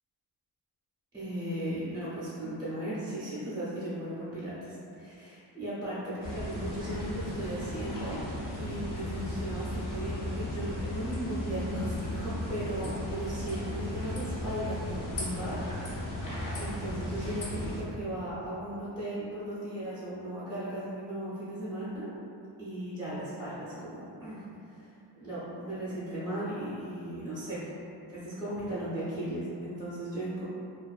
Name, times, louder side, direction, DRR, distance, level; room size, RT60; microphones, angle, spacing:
voice 1, 1.1-8.2 8.6-15.6 15.9-22.1 22.6-24.4 24.7-24.9 25.1-27.7 28.1-30.4, right 1 dB, 10° right, -11 dB, 0.6 m, -36 dB
sound 1, 6.2-17.8, left 1 dB, 50° left, 0.6 m, -36 dB
2.5 x 2.3 x 2.3 m, 2.5 s
wide cardioid pair, 135°, 43 cm